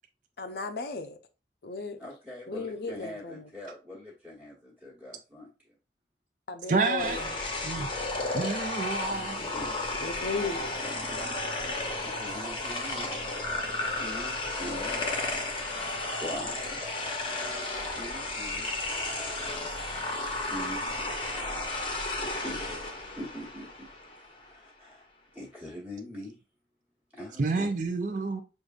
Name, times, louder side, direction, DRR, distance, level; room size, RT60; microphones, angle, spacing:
voice 1, 0.4-1.2 1.6-2.0 2.5-3.4 6.5-7.4 10.0-10.7, left 3 dB, 60° left, 0.5 m, -35 dB
voice 2, 2.0-5.5 9.5-9.9 12.0-13.1 14.0-15.1 16.2-16.8 17.9-18.7 20.4-20.8 22.2-22.6 23.1-23.9 24.3-25.1 25.3-26.3 27.1-27.7, left 1 dB, 10° right, 1.1 m, -42 dB
voice 3, 6.7-7.2 7.6-7.9 8.3-9.5 27.4-28.4, right 3 dB, 45° right, 0.4 m, -29 dB
sound 1, 7.0-24.3, left 2 dB, 30° left, 0.7 m, -33 dB
6.4 x 2.5 x 2.4 m
head